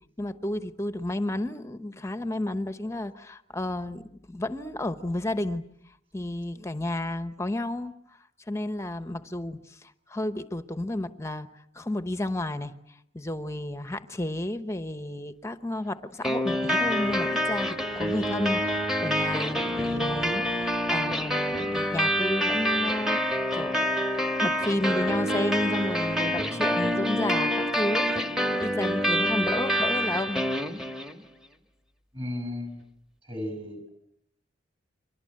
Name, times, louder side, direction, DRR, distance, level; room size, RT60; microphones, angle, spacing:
voice 1, 0.2-5.6 6.1-7.9 8.5-11.5 11.7-12.7 13.1-23.9 24.4-28.3 28.6-30.4, left 1 dB, 15° left, 11 dB, 1.0 m, -32 dB
sound 1, 16.2-31.2, equal, 5° right, 1.4 m, -27 dB
sound 2, 16.7-27.2, left 1 dB, 60° right, 7.3 m, -55 dB
voice 2, 32.1-32.8 33.3-33.9, left 1 dB, 25° right, 7 dB, 5.7 m, -34 dB
29.5 x 24.5 x 7.7 m, 0.74 s
head